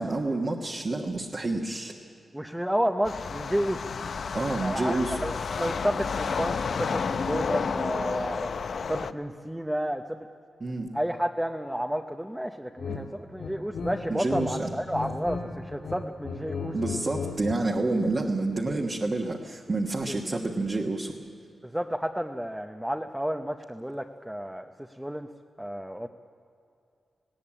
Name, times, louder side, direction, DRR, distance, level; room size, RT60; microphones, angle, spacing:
voice 1, 0.0-1.9 4.3-5.2 10.6-10.9 12.9-13.0 14.1-14.7 16.7-21.2, right 2 dB, 35° right, 0 dB, 1.3 m, -29 dB
voice 2, 2.3-3.8 4.6-8.6 8.9-10.2 10.9-16.7 20.1-20.4 21.6-24.7 25.0-25.3 25.6-26.1, equal, 5° right, 4 dB, 0.7 m, -31 dB
sound 1, 3.0-9.1, left 5 dB, 60° left, 0.6 m, -31 dB
sound 2, 12.8-13.0 13.4-14.5 14.8-15.4 15.7-17.6, left 5 dB, 80° left, 4.8 m, -35 dB
19.0 x 18.0 x 8.7 m, 2.5 s
wide cardioid pair, 120°, 0 cm